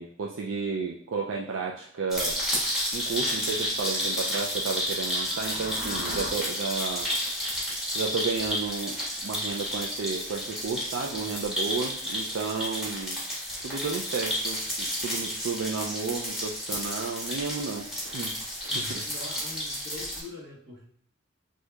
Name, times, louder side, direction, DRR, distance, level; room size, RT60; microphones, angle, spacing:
voice 1, 0.0-2.4 2.9-7.1 7.9-9.0 9.2-13.2 13.6-18.3 18.6-19.0, right 4 dB, 75° right, -1 dB, 0.4 m, -32 dB
sound 1, 2.1-20.2, equal, ahead, 1.6 m, -31 dB
sound 2, 4.9-6.3, left 2 dB, 55° left, 0.6 m, -39 dB
voice 2, 18.7-20.8, left 2 dB, 55° right, -2 dB, 1.3 m, -43 dB
6.2 x 2.7 x 2.3 m, 0.66 s
head